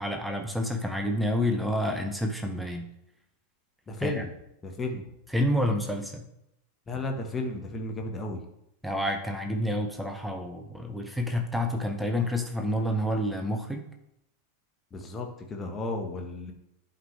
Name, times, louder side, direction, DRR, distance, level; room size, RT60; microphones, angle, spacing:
voice 1, 0.0-2.9 4.0-4.2 5.3-6.3 8.8-13.8, left 1 dB, ahead, 3 dB, 0.9 m, -29 dB
voice 2, 3.9-4.3 4.6-5.1 6.9-8.4 14.9-16.5, left 2 dB, 20° left, 2 dB, 1.4 m, -33 dB
11.0 x 5.1 x 3.3 m, 0.81 s
figure-of-eight pair, 90°, 0 cm